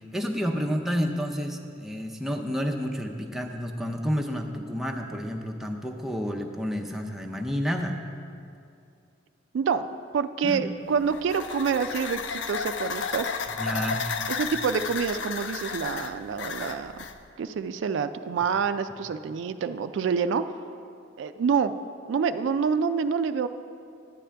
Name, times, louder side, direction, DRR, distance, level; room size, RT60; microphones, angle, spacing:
voice 1, 0.1-8.0 10.4-10.7 13.6-14.2, equal, ahead, 1 dB, 0.5 m, -30 dB
voice 2, 10.1-13.4 14.3-16.9 17.4-20.4 21.2-21.7 22.1-23.5, right 6 dB, 75° right, 11 dB, 0.3 m, -27 dB
sound 1, 10.9-17.2, left 6 dB, 70° left, 0.5 m, -33 dB
11.0 x 8.5 x 3.4 m, 2.4 s
head